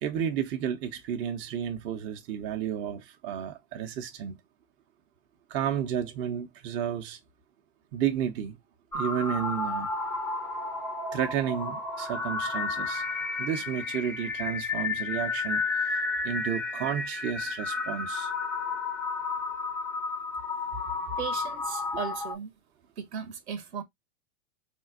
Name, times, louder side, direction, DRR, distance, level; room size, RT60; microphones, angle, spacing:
voice 1, 0.0-4.4 5.5-7.2 7.9-8.6 8.9-9.9 11.1-13.0 13.4-15.9 16.2-18.3, right 9 dB, 35° right, 0.6 m, -32 dB
Manic whistle, 8.9-22.3, left 4 dB, 5° left, 0.4 m, -32 dB
voice 2, 21.2-22.5 23.0-23.8, right 7 dB, 80° right, 1.0 m, -36 dB
3.7 x 2.5 x 2.4 m
hypercardioid pair, 120°, 33 cm